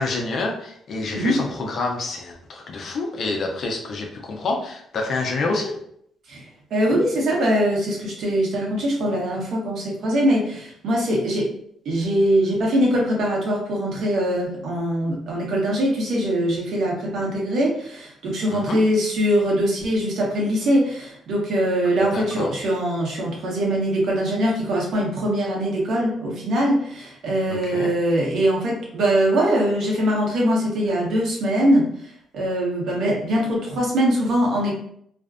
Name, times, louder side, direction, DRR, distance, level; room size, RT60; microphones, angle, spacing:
voice 1, 0.0-5.8 18.5-18.8 22.1-22.5 27.5-27.9, left 3 dB, 60° left, 1 dB, 0.5 m, -27 dB
voice 2, 6.7-11.5 11.8-31.8 32.3-34.7, equal, 70° right, -2 dB, 0.8 m, -22 dB
2.5 x 2.1 x 2.4 m, 0.68 s
cardioid pair, 90°, 0 cm